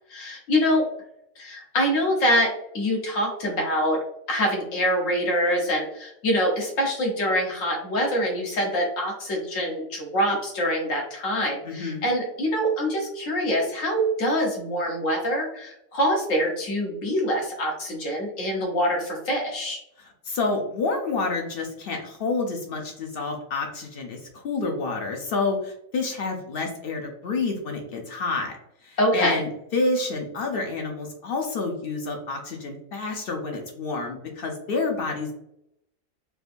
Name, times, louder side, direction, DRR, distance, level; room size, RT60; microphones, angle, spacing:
voice 1, 0.1-0.8 1.4-4.0 4.3-19.8 29.0-29.4, equal, 85° left, 0 dB, 1.3 m, -25 dB
voice 2, 11.6-12.1 20.0-28.6 28.8-35.3, left 3 dB, 60° left, 2 dB, 0.7 m, -29 dB
3.6 x 2.5 x 2.5 m, 0.79 s
omnidirectional pair, 1.3 m